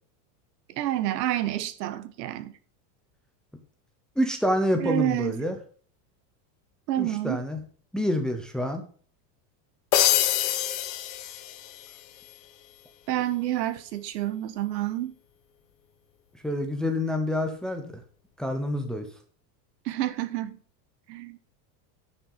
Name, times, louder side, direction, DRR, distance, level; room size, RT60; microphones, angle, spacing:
voice 1, 0.7-2.6 4.8-5.3 6.9-7.4 13.1-15.1 19.8-20.6 21.1-21.4, right 13 dB, 85° right, 1.5 m, -29 dB
voice 2, 4.2-5.6 7.0-7.6 7.9-8.8 16.4-17.9 18.4-19.1, left 1 dB, ahead, 0.8 m, -27 dB
sound 1, 9.9-12.0, left 12 dB, 70° left, 1.6 m, -25 dB
11.0 x 6.0 x 5.5 m
supercardioid pair, 175°, 48 cm